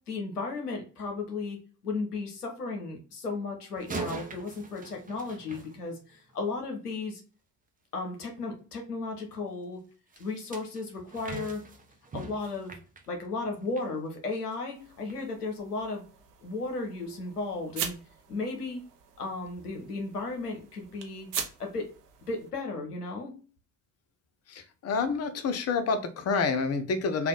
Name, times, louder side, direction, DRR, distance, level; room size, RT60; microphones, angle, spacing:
voice 1, 0.1-1.6 1.8-7.2 7.9-9.8 10.2-11.6 12.1-12.8 13.1-16.0 16.4-18.0 18.3-18.8 19.2-21.3 21.6-21.9 22.3-23.3, left 3 dB, 90° left, 3 dB, 0.8 m, -35 dB
sound 1, 3.8-6.3 10.1-13.9 14.3-14.5 15.1-15.2, right 4 dB, 20° right, 0.7 m, -42 dB
sound 2, 14.7-22.5, right 8 dB, 85° right, 0.7 m, -42 dB
voice 2, 24.5-27.3, left 4 dB, 35° left, 10 dB, 0.7 m, -28 dB
3.4 x 2.4 x 3.8 m, 0.37 s
figure-of-eight pair, 55°, 45 cm